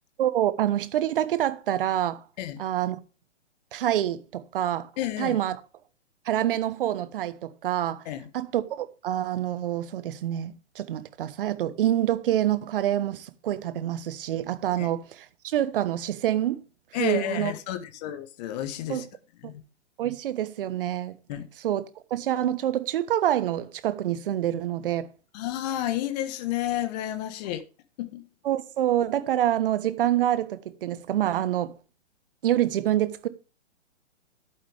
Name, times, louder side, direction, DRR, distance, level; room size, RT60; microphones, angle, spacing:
voice 1, 0.2-2.2 2.6-3.0 3.7-4.9 5.2-5.6 6.2-8.0 8.3-16.6 17.0-17.5 18.9-19.0 20.0-21.2 21.6-25.1 28.4-31.7 32.4-33.3, right 12 dB, 45° right, 1.2 m, -26 dB
voice 2, 5.0-5.4 8.0-8.3 14.8-14.9 16.9-19.1 19.4-19.6 21.3-21.4 25.3-27.6 28.0-28.2, left 12 dB, 35° left, 1.4 m, -31 dB
11.5 x 8.9 x 3.4 m
figure-of-eight pair, 130°, 37 cm